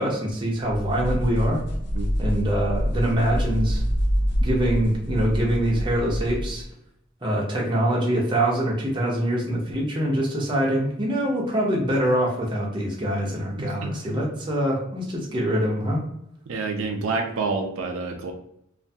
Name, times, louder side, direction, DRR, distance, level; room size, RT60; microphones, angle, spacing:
voice 1, 0.0-1.6 2.2-3.8 4.4-6.6 7.2-16.0, right 1 dB, 25° right, -3 dB, 0.6 m, -24 dB
sound 1, 0.7-6.7, equal, 55° left, 0.4 m, -26 dB
voice 2, 13.6-13.9 16.5-18.3, right 3 dB, 80° right, 3 dB, 0.4 m, -28 dB
2.5 x 2.2 x 2.6 m, 0.76 s
head